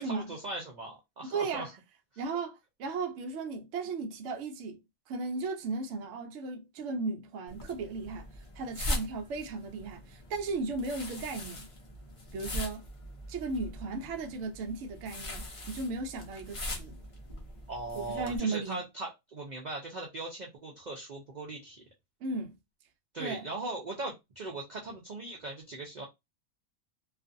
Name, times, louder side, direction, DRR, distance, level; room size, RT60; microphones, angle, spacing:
voice 1, 0.0-1.7 2.1-2.2 17.7-21.8 23.1-26.1, right 2 dB, 90° right, 0.4 m, -39 dB
voice 2, 1.2-1.7 2.2-4.8 5.1-11.7 12.3-12.9 13.3-17.0 17.9-18.8 22.2-22.5 23.2-23.5, right 3 dB, 65° right, 0.8 m, -36 dB
sound 1, 7.5-18.4, left 1 dB, 45° left, 0.4 m, -41 dB
2.4 x 2.4 x 2.5 m
omnidirectional pair, 1.5 m